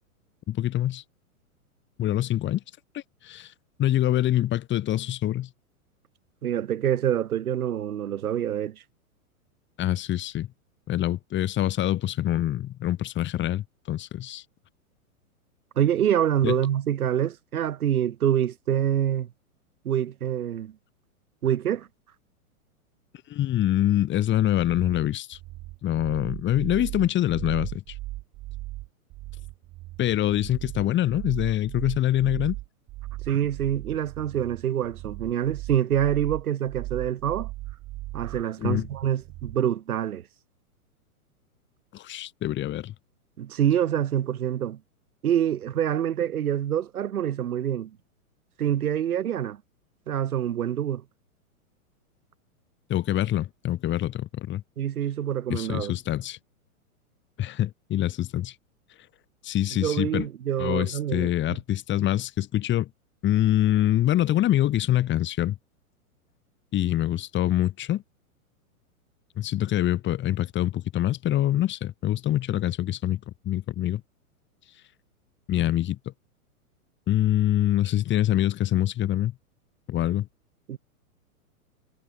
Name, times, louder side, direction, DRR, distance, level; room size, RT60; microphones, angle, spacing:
voice 1, 0.5-1.0 2.0-2.6 2.9-3.5 3.8-5.5 9.8-10.5 10.9-14.4 16.4-16.6 23.3-25.4 25.8-27.8 30.0-32.6 38.6-38.9 41.9-42.9 52.9-54.6 55.5-56.4 57.4-58.5 59.4-60.3 60.6-62.9 63.2-65.6 66.7-68.0 69.4-74.0 75.5-76.1 77.1-79.3 79.9-80.3, left 13 dB, 25° left, 3.0 m, -25 dB
voice 2, 6.4-8.8 15.8-19.3 19.8-20.7 21.4-21.9 33.3-37.5 38.1-40.2 43.4-44.8 45.2-47.9 48.6-49.6 50.1-51.0 54.8-55.9 59.8-61.6 80.7-80.8, right 10 dB, 75° right, 2.3 m, -26 dB
sound 1, 24.6-39.6, right 18 dB, 30° right, 2.4 m, -37 dB
hypercardioid pair, 125°, 44 cm